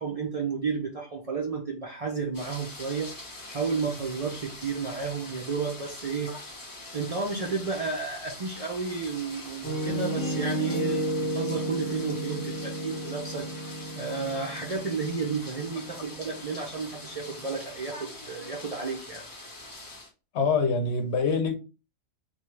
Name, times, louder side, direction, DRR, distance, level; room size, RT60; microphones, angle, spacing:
voice 1, 0.0-3.1 3.5-6.3 6.9-13.5 13.9-19.3, right 4 dB, 70° right, 0.3 m, -32 dB
sound 1, 2.3-20.1, left 2 dB, 25° left, 0.5 m, -43 dB
Piano, 9.6-17.5, right 1 dB, 5° left, 0.8 m, -33 dB
voice 2, 20.3-21.5, left 4 dB, 65° left, 0.8 m, -25 dB
3.4 x 2.3 x 3.0 m
omnidirectional pair, 1.4 m